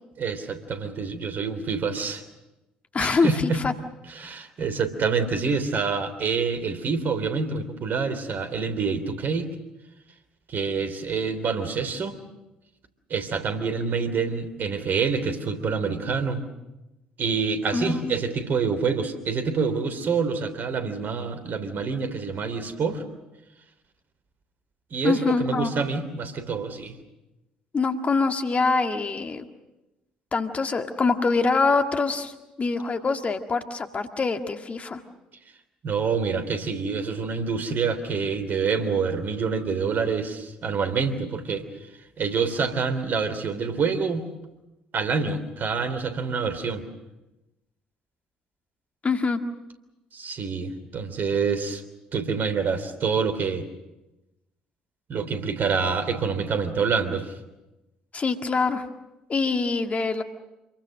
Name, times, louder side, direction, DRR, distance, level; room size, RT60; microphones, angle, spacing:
voice 1, 0.2-2.2 3.0-3.6 4.1-9.5 10.5-12.2 13.1-16.4 17.2-23.0 24.9-26.9 35.8-41.7 42.2-44.3 44.9-46.8 50.1-51.8 52.1-53.7 55.1-57.3, right 5 dB, 45° right, 9 dB, 3.2 m, -27 dB
voice 2, 2.9-3.7 17.7-18.2 25.0-25.7 27.7-29.4 30.3-32.3 32.6-35.0 49.0-49.4 58.1-58.8 59.3-60.2, left 4 dB, 30° left, 6 dB, 1.9 m, -24 dB
27.5 x 23.0 x 6.5 m, 0.99 s
figure-of-eight pair, 50°, 4 cm